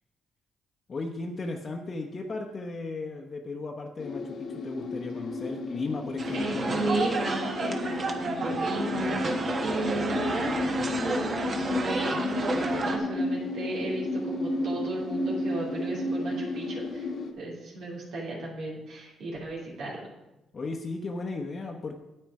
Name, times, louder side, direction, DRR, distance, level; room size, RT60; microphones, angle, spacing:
voice 1, 0.9-7.0 20.5-22.0, left 3 dB, 40° left, 2 dB, 0.9 m, -35 dB
sound 1, 4.0-17.3, left 2 dB, 60° left, 1.2 m, -32 dB
sound 2, 6.2-13.0, right 3 dB, 40° right, 1.2 m, -31 dB
voice 2, 6.3-9.3 9.6-17.1 17.4-20.0, right 2 dB, 75° right, -4 dB, 2.9 m, -34 dB
8.9 x 8.7 x 4.7 m, 0.98 s
cardioid pair, 100°, 0 cm